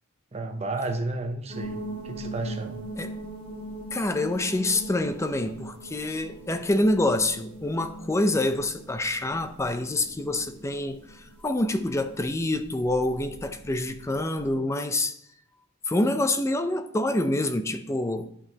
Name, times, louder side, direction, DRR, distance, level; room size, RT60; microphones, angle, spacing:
voice 1, 0.3-2.8, right 2 dB, 30° right, 0.7 m, -32 dB
sound 1, 1.5-14.5, right 1 dB, 55° right, 2.0 m, -42 dB
voice 2, 3.9-15.2 15.9-18.3, left 1 dB, 15° left, 0.4 m, -26 dB
11.0 x 5.4 x 2.8 m
head